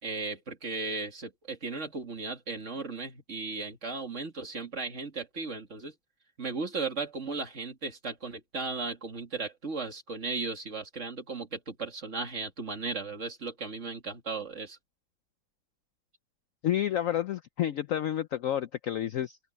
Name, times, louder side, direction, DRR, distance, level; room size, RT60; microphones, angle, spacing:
voice 1, 0.0-5.9 6.4-14.8, right 4 dB, 40° right, 2.4 m, -36 dB
voice 2, 16.6-19.4, left 11 dB, 85° left, 0.7 m, -30 dB
open air
omnidirectional pair, 2.1 m